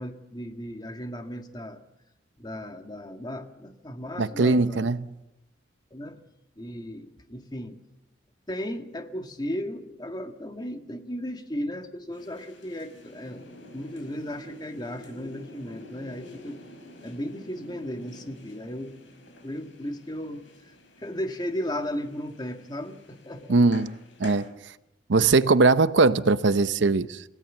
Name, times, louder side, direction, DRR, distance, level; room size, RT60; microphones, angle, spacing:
voice 1, 0.0-1.8 2.4-4.9 5.9-6.2 6.6-7.8 8.5-13.5 13.7-16.6 17.0-18.9 19.4-23.6, equal, 20° left, 1.6 m, -35 dB
voice 2, 4.2-5.1 23.5-24.5 25.1-27.2, right 3 dB, 70° right, 0.7 m, -21 dB
sound 1, 12.1-24.5, left 1 dB, 75° left, 5.8 m, -48 dB
27.0 x 17.0 x 7.3 m
head